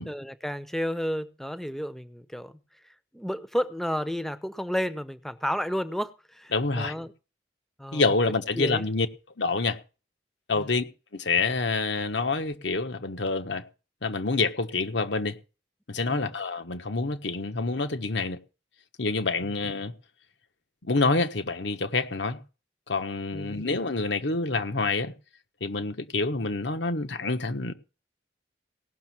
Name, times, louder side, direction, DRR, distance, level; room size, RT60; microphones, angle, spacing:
voice 1, 0.0-2.5 3.1-7.1 7.8-8.0 8.6-8.9 10.6-10.8 16.1-16.3 19.4-19.5 23.3-23.7, equal, ahead, 0.7 m, -32 dB
voice 2, 6.5-6.9 7.9-9.1 9.4-9.8 10.5-10.8 11.1-13.6 14.0-15.4 15.9-18.4 19.0-19.9 20.8-22.4 22.9-25.1 25.6-27.7, left 3 dB, 75° left, 1.3 m, -27 dB
18.0 x 6.4 x 6.1 m
head